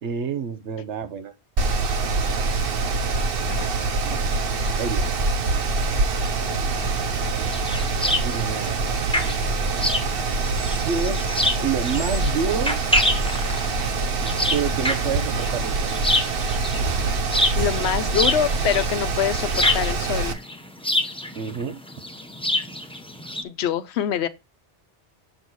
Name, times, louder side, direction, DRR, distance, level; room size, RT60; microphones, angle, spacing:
voice 1, 0.0-1.3 4.0-4.3 4.7-5.1 8.2-8.8 10.8-11.2 11.6-12.8 14.5-15.9 16.8-16.9 21.3-21.8, right 6 dB, 85° right, 1.2 m, -28 dB
Mechanical fan, 1.6-20.3, right 3 dB, 60° right, 1.1 m, -25 dB
sound 1, 6.8-23.4, left 1 dB, 5° left, 0.8 m, -27 dB
voice 2, 17.6-20.4 23.4-24.3, left 9 dB, 75° left, 1.0 m, -25 dB
6.8 x 6.3 x 4.0 m
omnidirectional pair, 1.1 m